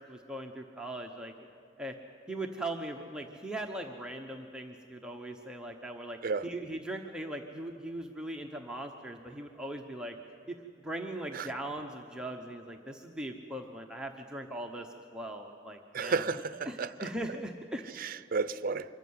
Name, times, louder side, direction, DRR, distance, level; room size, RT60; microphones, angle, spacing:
voice 1, 0.0-1.3 1.8-2.0 2.3-10.2 10.5-10.6 10.8-16.3 16.6-17.8, right 1 dB, 5° right, 1.0 m, -40 dB
voice 2, 15.9-16.9 18.0-18.9, right 4 dB, 50° right, 0.6 m, -32 dB
25.0 x 14.5 x 9.5 m
head